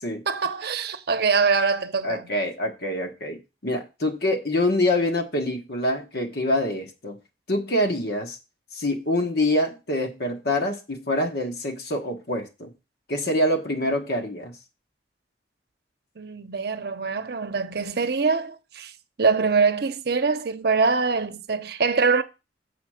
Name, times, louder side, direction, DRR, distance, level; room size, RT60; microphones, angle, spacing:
voice 1, 0.3-2.3 16.2-18.9 19.2-22.2, right 4 dB, 60° right, 0.7 m, -23 dB
voice 2, 2.0-7.2 7.5-8.4 8.7-12.7 13.1-14.5, left 1 dB, 65° left, 1.4 m, -25 dB
7.2 x 4.4 x 6.3 m
head